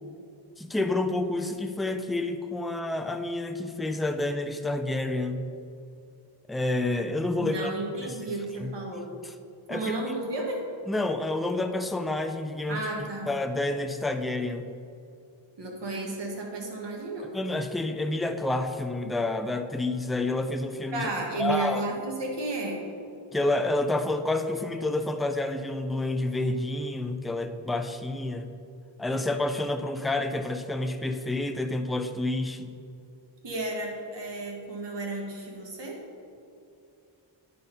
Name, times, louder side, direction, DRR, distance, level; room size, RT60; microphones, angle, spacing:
voice 1, 0.6-5.5 6.5-7.7 8.6-8.7 9.2-9.3 9.7-10.0 10.9-12.8 13.3-14.6 17.3-21.1 21.4-21.9 23.3-28.5 29.0-32.7, left 2 dB, ahead, 7 dB, 0.4 m, -29 dB
voice 2, 7.4-9.1 9.7-10.6 12.7-13.3 15.6-17.3 20.9-22.8 33.4-36.0, right 2 dB, 60° right, 0 dB, 1.7 m, -33 dB
10.0 x 4.1 x 5.2 m, 2.5 s
cardioid pair, 65°, 49 cm